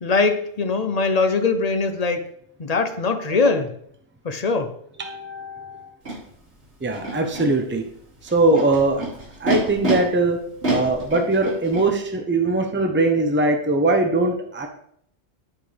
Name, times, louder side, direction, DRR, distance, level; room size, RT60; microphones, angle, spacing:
voice 1, 0.0-2.2 2.6-3.8 4.2-4.7, left 4 dB, 40° left, 7 dB, 0.9 m, -21 dB
voice 2, 5.0-5.9 6.8-7.8 8.3-9.0 9.4-10.4 10.7-14.7, right 2 dB, 10° right, 4 dB, 0.9 m, -21 dB
Animal, 6.0-6.1 6.9-7.4 8.3-9.9 10.6-11.8, right 3 dB, 75° right, 3.2 m, -26 dB
10.5 x 8.5 x 3.4 m, 0.68 s
omnidirectional pair, 1.1 m